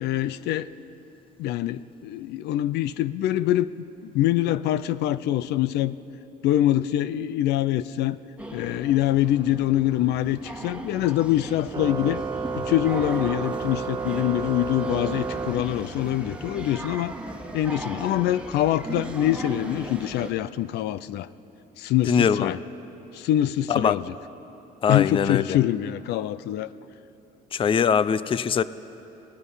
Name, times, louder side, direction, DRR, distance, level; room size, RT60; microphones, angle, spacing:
voice 1, 0.0-0.7 1.4-6.0 6.4-8.2 8.5-12.2 12.5-17.1 17.5-21.3 21.8-22.6 23.1-24.1 24.9-26.7, left 13 dB, 80° left, 15 dB, 0.5 m, -24 dB
sound 1, 8.4-20.3, right 1 dB, 5° right, 1.4 m, -38 dB
Organ, 11.7-16.2, right 5 dB, 25° right, 1.0 m, -32 dB
voice 2, 22.1-22.6 23.7-24.0 24.8-25.5 27.5-28.6, left 7 dB, 30° left, 16 dB, 0.5 m, -22 dB
27.0 x 17.5 x 5.6 m, 2.9 s
cardioid pair, 110°, 17 cm